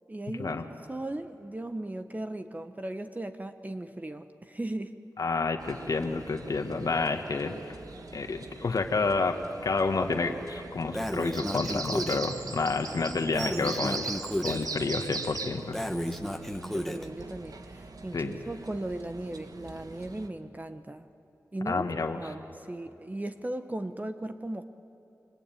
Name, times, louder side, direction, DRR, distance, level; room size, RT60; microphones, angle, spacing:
voice 1, 0.1-0.6 0.9-4.9 16.1-21.0 21.5-24.6, right 1 dB, 25° right, 8 dB, 1.2 m, -37 dB
voice 2, 5.2-7.8 8.1-14.1 14.4-15.7 18.1-18.3 21.6-22.2, left 4 dB, 65° left, 5 dB, 1.6 m, -29 dB
sound 1, 5.6-20.3, right 4 dB, 70° right, 1.8 m, -41 dB
Breathing, 10.9-12.3 13.3-14.6 15.7-17.1, equal, 5° left, 1.7 m, -32 dB
sound 2, 12.0-17.6, right 2 dB, 50° right, 1.8 m, -51 dB
28.5 x 22.0 x 9.4 m, 3.0 s
cardioid pair, 55°, 6 cm